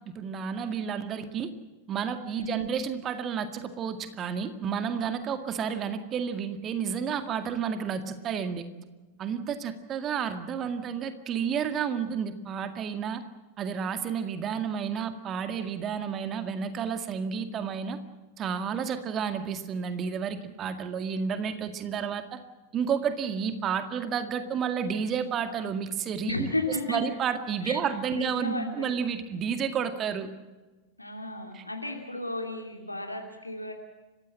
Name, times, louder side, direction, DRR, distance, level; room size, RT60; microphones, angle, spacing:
voice 1, 0.1-1.5 1.9-8.7 9.2-13.2 13.6-18.0 18.4-22.4 22.7-30.3 31.5-31.6, right 7 dB, 30° right, 9 dB, 2.0 m, -31 dB
voice 2, 26.3-27.0 27.6-27.8 28.1-28.9 31.0-33.7, left 2 dB, 85° left, 2 dB, 2.7 m, -33 dB
30.0 x 16.5 x 7.6 m, 1.2 s
figure-of-eight pair, 90°, 0 cm